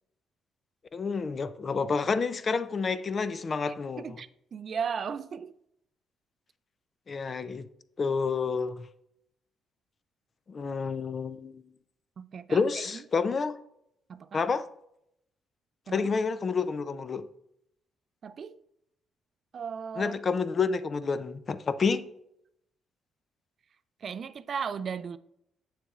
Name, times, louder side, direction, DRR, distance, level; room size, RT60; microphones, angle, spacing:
voice 1, 0.9-4.2 7.1-7.7 8.0-8.9 10.5-11.6 12.5-13.6 14.3-14.7 15.9-17.3 20.0-22.1, left 5 dB, 40° left, 0.4 m, -29 dB
voice 2, 3.7-5.6 12.2-13.0 14.1-14.4 15.9-16.1 18.2-18.6 19.5-20.2 24.0-25.2, right 6 dB, 50° right, 0.3 m, -36 dB
7.5 x 6.9 x 2.4 m
cardioid pair, 90°, 0 cm